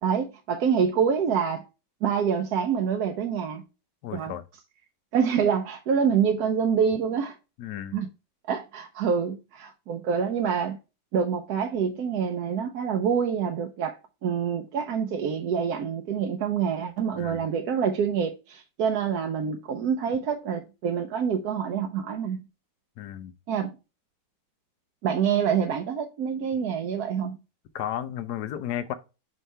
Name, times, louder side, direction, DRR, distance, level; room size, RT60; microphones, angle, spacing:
voice 1, 0.0-1.6 2.0-3.6 4.1-4.3 5.1-7.4 7.9-8.1 8.5-10.8 11.1-22.4 23.5-23.8 25.0-27.4, right 7 dB, 65° right, 1.1 m, -26 dB
voice 2, 4.0-4.4 7.6-8.0 17.2-17.5 23.0-23.3 27.7-28.9, left 11 dB, 65° left, 1.2 m, -33 dB
5.6 x 5.5 x 3.3 m
omnidirectional pair, 2.0 m